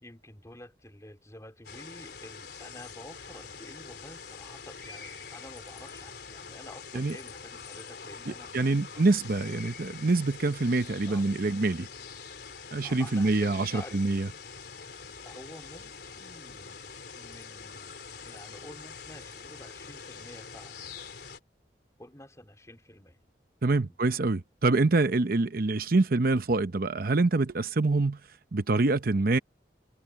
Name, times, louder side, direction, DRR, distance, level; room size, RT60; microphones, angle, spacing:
voice 1, 0.0-8.6 8.9-9.7 11.1-11.3 12.8-14.2 15.2-16.8 17.1-20.9 22.0-23.2 23.7-24.0, left 1 dB, 20° left, 3.5 m, -49 dB
sound 1, 1.6-21.4, left 5 dB, 65° left, 3.8 m, -45 dB
voice 2, 8.3-11.9 12.7-14.3 23.6-28.2 28.5-29.4, right 3 dB, 55° right, 0.8 m, -25 dB
head